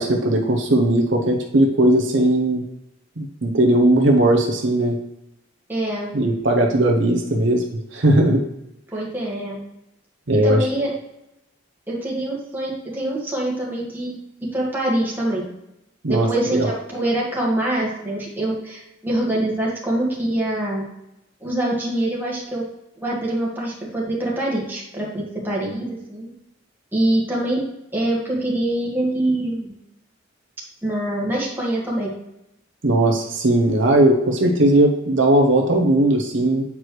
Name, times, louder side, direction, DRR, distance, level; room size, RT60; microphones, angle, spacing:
voice 1, 0.0-2.6 3.2-5.0 6.1-7.6 7.9-8.4 10.3-10.7 16.0-16.7 32.8-36.6, right 1 dB, 65° right, 1 dB, 0.9 m, -18 dB
voice 2, 5.7-6.1 8.9-9.6 10.4-10.9 11.9-14.2 14.5-15.5 16.1-20.9 21.4-22.7 23.0-26.3 26.9-27.6 27.9-29.8 30.8-32.2, right 1 dB, 10° right, -5 dB, 1.7 m, -24 dB
8.4 x 4.6 x 3.2 m, 0.86 s
head